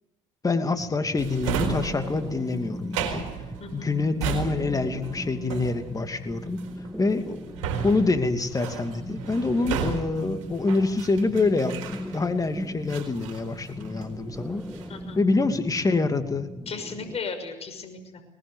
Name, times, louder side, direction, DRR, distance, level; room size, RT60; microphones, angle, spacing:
voice 1, 0.4-3.4 3.7-6.6 7.0-7.4 7.8-14.6 15.2-16.5, left 3 dB, 20° left, 7 dB, 2.6 m, -26 dB
sound 1, 0.8-17.2, equal, ahead, 1.5 m, -39 dB
Drawer open or close, 1.2-12.4 12.9-14.2 14.5-15.0, right 7 dB, 90° right, 4.3 m, -34 dB
voice 2, 16.7-18.2, left 4 dB, 40° left, 6 dB, 6.1 m, -36 dB
22.0 x 20.0 x 8.2 m, 0.87 s
supercardioid pair, 80°, 16 cm